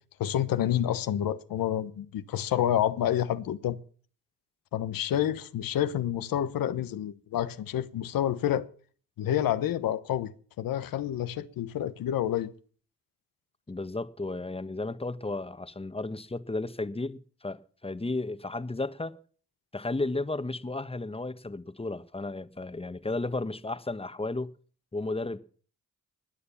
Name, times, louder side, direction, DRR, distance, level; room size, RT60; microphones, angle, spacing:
voice 1, 0.2-3.8 4.7-8.7 9.2-10.3 10.6-12.5, left 11 dB, 85° left, 1.1 m, -28 dB
voice 2, 13.7-19.2 19.7-24.5 24.9-25.4, left 2 dB, 15° left, 1.3 m, -33 dB
20.5 x 6.8 x 7.1 m
cardioid pair, 65°, 33 cm